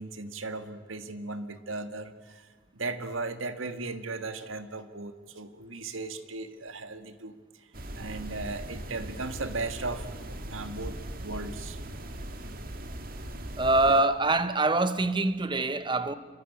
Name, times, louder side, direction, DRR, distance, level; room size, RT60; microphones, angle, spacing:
voice 1, 0.0-7.7 8.0-11.0 11.2-11.8, right 3 dB, 85° right, 1.9 m, -37 dB
sound 1, 7.7-14.0, right 1 dB, 45° right, 2.1 m, -39 dB
voice 2, 13.6-16.1, right 2 dB, 25° right, 1.2 m, -24 dB
26.5 x 23.5 x 8.9 m
head